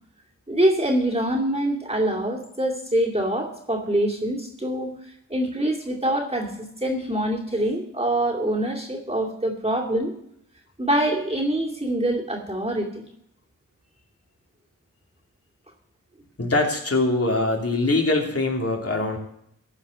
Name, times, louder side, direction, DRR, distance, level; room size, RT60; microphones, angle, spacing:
voice 1, 0.5-4.9 5.3-10.1 10.8-13.0, right 1 dB, 20° right, -2 dB, 2.6 m, -25 dB
voice 2, 16.4-19.2, left 2 dB, 45° left, 1 dB, 2.9 m, -23 dB
15.0 x 5.1 x 8.2 m, 0.74 s
cardioid pair, 40°, 32 cm